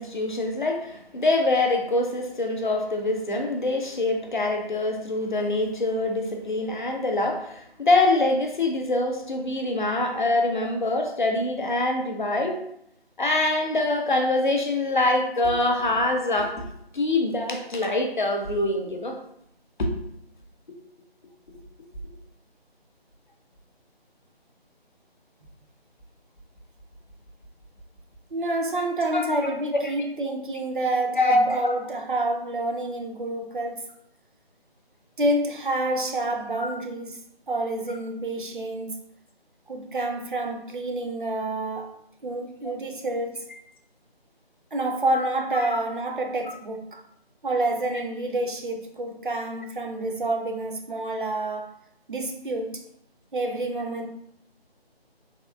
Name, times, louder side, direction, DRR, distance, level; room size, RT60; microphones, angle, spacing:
voice 1, 0.0-12.6 13.2-16.6 16.9-19.2 19.8-19.9 21.5-21.6 29.1-29.3 29.7-29.9 31.0-31.7 36.6-36.7 42.6-42.7 45.7-45.8, left 2 dB, 50° left, 3 dB, 0.4 m, -24 dB
voice 2, 28.3-33.9 35.2-37.2 37.5-39.0 39.7-41.9 42.2-43.4 44.7-47.0 47.4-51.7 52.1-52.8 53.3-54.1, right 2 dB, 55° right, 3 dB, 0.4 m, -28 dB
3.5 x 2.1 x 2.2 m, 0.73 s
figure-of-eight pair, 160°, 31 cm